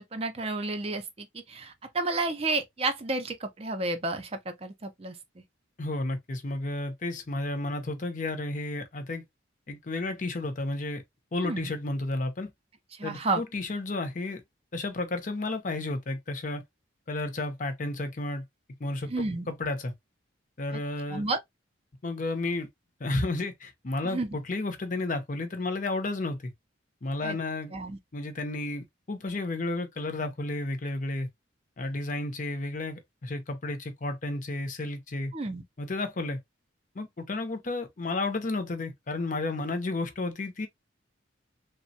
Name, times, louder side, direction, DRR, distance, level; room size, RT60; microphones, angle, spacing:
voice 1, 0.0-5.4 11.4-11.7 13.0-13.4 19.1-19.5 21.1-21.4 24.0-24.3 27.2-27.4 27.7-28.0 35.3-35.6, right 3 dB, 30° right, 0.5 m, -31 dB
voice 2, 5.8-9.2 9.7-11.0 11.3-12.5 13.0-14.4 14.7-16.6 17.1-18.4 18.8-19.9 20.6-21.3 22.0-22.7 23.0-26.5 27.0-27.7 28.1-31.3 31.8-35.3 35.8-36.4 37.0-40.7, left 2 dB, 40° left, 0.6 m, -32 dB
3.3 x 2.1 x 2.6 m
head